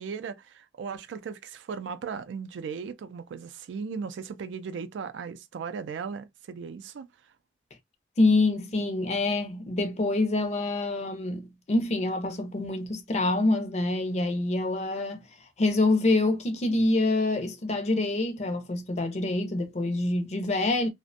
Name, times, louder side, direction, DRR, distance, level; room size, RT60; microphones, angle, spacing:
voice 1, 0.0-7.1, right 6 dB, 85° right, 0.3 m, -37 dB
voice 2, 8.2-15.3 15.6-20.9, left 2 dB, 35° left, 0.4 m, -26 dB
2.5 x 2.1 x 2.5 m
head